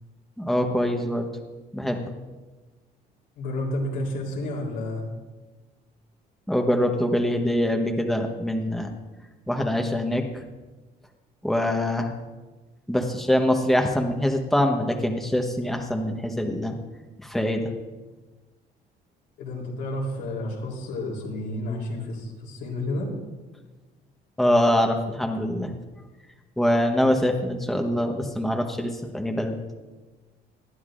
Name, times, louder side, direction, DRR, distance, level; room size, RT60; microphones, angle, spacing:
voice 1, 0.4-1.3 1.7-2.0 6.5-8.9 9.5-10.4 11.4-12.1 12.9-16.7 17.2-17.7 24.4-25.8 26.6-29.6, left 1 dB, ahead, 3 dB, 1.1 m, -24 dB
voice 2, 3.4-5.1 19.4-23.1, left 1 dB, 85° left, -2 dB, 3.6 m, -31 dB
19.5 x 11.5 x 2.6 m, 1.2 s
cardioid pair, 110°, 17 cm